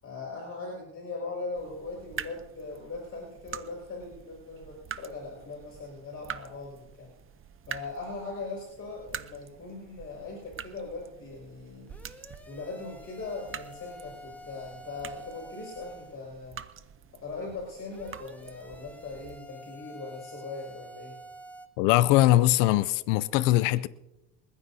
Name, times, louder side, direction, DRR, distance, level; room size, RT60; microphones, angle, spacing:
voice 1, 0.0-7.1 7.7-11.9 12.5-16.6 17.2-21.2, left 3 dB, 30° left, 5.3 m, -40 dB
sound 1, 1.5-19.4, right 8 dB, 30° right, 0.8 m, -46 dB
sound 2, 11.9-16.2 17.9-21.7, equal, 5° left, 1.6 m, -48 dB
voice 2, 21.8-23.9, left 16 dB, 80° left, 0.7 m, -21 dB
28.0 x 10.0 x 2.8 m
supercardioid pair, 85°, 41 cm